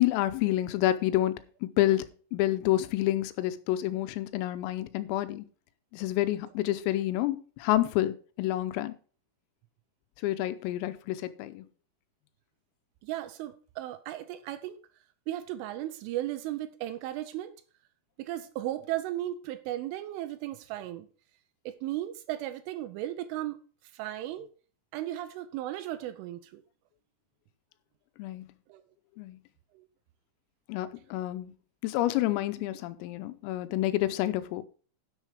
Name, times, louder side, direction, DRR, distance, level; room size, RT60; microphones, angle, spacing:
voice 1, 0.0-5.5 5.9-8.9 10.2-11.7 28.2-28.5 29.2-29.4 30.7-31.5 31.8-34.7, left 15 dB, 90° left, 3.4 m, -28 dB
voice 2, 13.0-14.8 15.3-17.5 18.2-21.1 21.7-23.6 23.9-24.5 24.9-26.6 28.7-28.8 29.7-29.9, right 14 dB, 80° right, 3.0 m, -35 dB
11.0 x 6.5 x 4.8 m
omnidirectional pair, 6.0 m